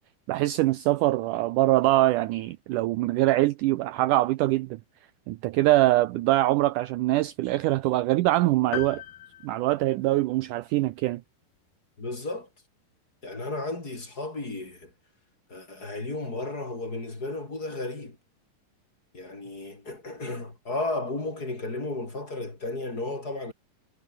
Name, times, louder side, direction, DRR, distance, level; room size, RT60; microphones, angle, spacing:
voice 1, 0.3-4.8 5.3-9.0 9.4-11.2, right 17 dB, 75° right, 2.0 m, -23 dB
sound 1, 8.7-10.5, left 11 dB, 90° left, 3.5 m, -39 dB
voice 2, 12.0-12.5 13.2-14.9 15.5-18.2 19.1-23.5, left 2 dB, 25° left, 4.8 m, -33 dB
omnidirectional pair, 4.1 m